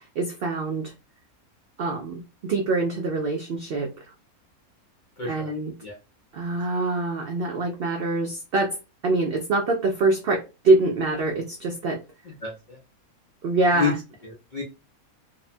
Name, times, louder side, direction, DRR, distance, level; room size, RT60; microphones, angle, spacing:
voice 1, 0.2-0.9 1.8-3.9 5.3-5.7 6.3-8.8 9.0-12.0 13.4-13.9, right 2 dB, 75° right, 0.5 m, -24 dB
voice 2, 5.2-5.5 5.8-6.0 12.2-12.8 13.7-13.9 14.2-14.6, left 6 dB, 65° left, 0.5 m, -29 dB
2.7 x 2.1 x 2.5 m
omnidirectional pair, 1.5 m